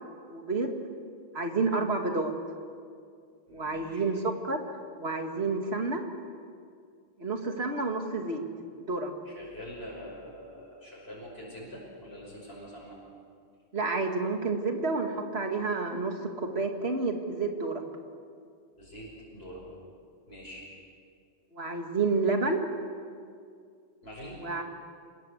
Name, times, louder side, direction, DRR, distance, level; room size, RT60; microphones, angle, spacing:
voice 1, 0.3-0.8 1.3-2.3 3.5-4.6 5.0-6.0 7.2-8.4 8.8-9.1 13.7-17.8 21.5-22.6 24.4-24.6, right 3 dB, 75° right, 4 dB, 2.4 m, -29 dB
voice 2, 3.5-4.0 9.2-13.0 18.7-19.7 20.3-20.7 24.0-24.4, equal, 70° left, -5 dB, 6.0 m, -44 dB
26.0 x 20.0 x 8.1 m, 2.3 s
omnidirectional pair, 1.1 m